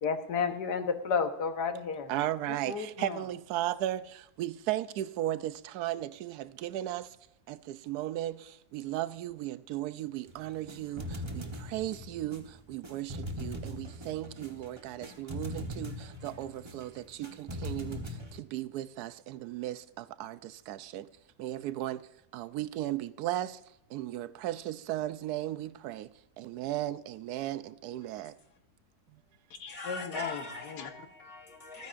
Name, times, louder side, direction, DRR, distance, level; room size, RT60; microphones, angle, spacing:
voice 1, 0.0-2.1 2.5-3.2 29.6-30.9, left 5 dB, 80° left, 1.7 m, -33 dB
voice 2, 2.1-7.2 7.5-21.1 21.4-23.6 23.9-28.3, right 13 dB, 75° right, 1.1 m, -36 dB
sound 1, 10.3-18.4, left 1 dB, 20° right, 1.0 m, -41 dB
voice 3, 29.7-31.9, left 2 dB, 60° left, 1.7 m, -41 dB
25.5 x 9.5 x 2.5 m
omnidirectional pair, 1.8 m